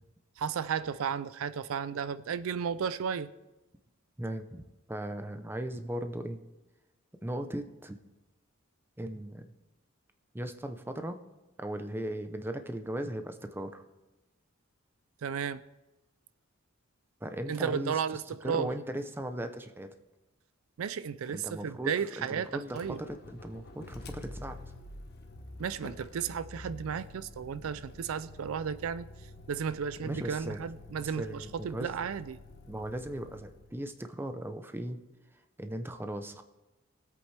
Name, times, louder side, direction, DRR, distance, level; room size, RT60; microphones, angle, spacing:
voice 1, 0.4-3.3 15.2-15.6 17.5-18.7 20.8-23.0 25.6-29.1 29.5-32.4, right 7 dB, 80° right, 0.4 m, -34 dB
voice 2, 4.2-4.6 4.9-6.4 7.2-8.0 9.0-9.4 10.3-11.2 11.6-13.8 17.2-19.9 21.3-24.6 30.0-30.6 31.0-31.9 32.7-35.0 35.6-36.4, right 1 dB, 10° right, 0.6 m, -38 dB
Motor vehicle (road), 22.7-33.8, left 2 dB, 50° left, 1.0 m, -48 dB
21.0 x 8.1 x 3.3 m
head